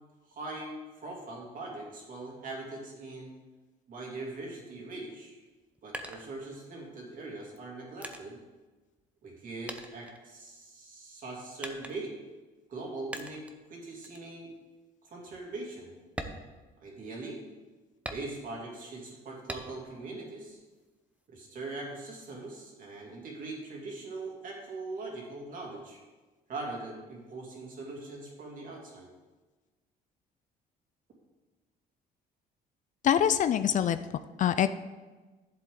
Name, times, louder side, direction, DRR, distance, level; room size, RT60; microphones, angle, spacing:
voice 1, 0.3-3.3 3.9-5.4 5.8-8.4 9.2-12.2 12.7-13.4 13.7-14.5 15.0-15.9 16.8-17.4 18.1-20.6 21.3-26.0 26.5-29.1, right 2 dB, 55° right, -1 dB, 2.7 m, -41 dB
sound 1, 5.4-6.9 7.5-9.4 9.7-10.8 11.6-12.3 13.1-13.6 14.0-14.3 14.7-14.8 15.3-15.4 16.0-17.3 18.0-18.7 19.5-20.0 20.4-21.3, right 1 dB, 10° right, 0.8 m, -43 dB
voice 2, 33.0-34.0 34.4-34.7, left 9 dB, 50° left, 12 dB, 0.4 m, -24 dB
11.0 x 7.5 x 3.8 m, 1.3 s
cardioid pair, 110°, 17 cm